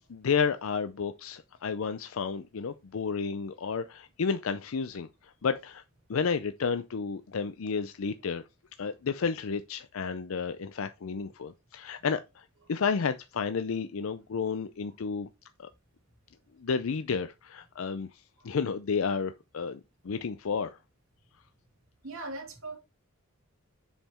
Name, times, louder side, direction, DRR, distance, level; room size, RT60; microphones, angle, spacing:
voice 1, 0.1-5.1 5.4-5.8 6.1-8.4 8.8-12.4 12.7-15.3 15.6-15.7 16.6-18.1 18.4-19.8 20.0-20.8, left 5 dB, 75° left, 0.5 m, -31 dB
voice 2, 22.0-22.8, right 2 dB, 75° right, 2.6 m, -40 dB
7.1 x 5.7 x 4.3 m
head